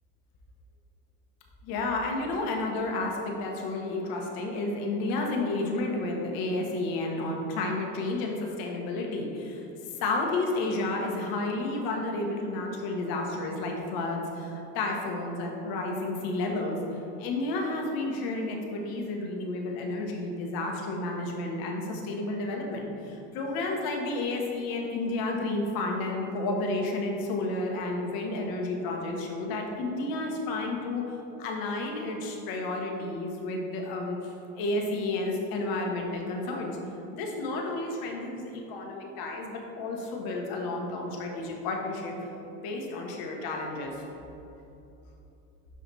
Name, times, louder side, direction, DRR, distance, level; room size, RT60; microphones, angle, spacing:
voice 1, 1.6-9.6 10.0-31.0 31.4-36.8 37.1-42.1 42.6-44.0, left 2 dB, 55° left, 1 dB, 1.3 m, -31 dB
6.2 x 4.8 x 4.2 m, 2.9 s
supercardioid pair, 95°, 42 cm